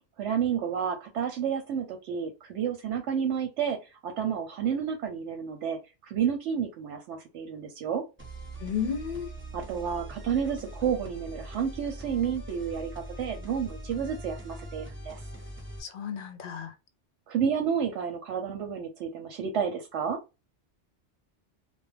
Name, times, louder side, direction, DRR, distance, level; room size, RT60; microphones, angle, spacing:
voice 1, 0.2-8.0 9.5-12.9 13.2-15.2 17.3-20.2, right 7 dB, 80° right, 0.9 m, -30 dB
sound 1, 8.2-15.8, right 1 dB, 15° right, 0.7 m, -42 dB
voice 2, 8.6-9.3 15.8-16.7, left 7 dB, 60° left, 0.7 m, -33 dB
2.3 x 2.1 x 3.1 m
omnidirectional pair, 1.2 m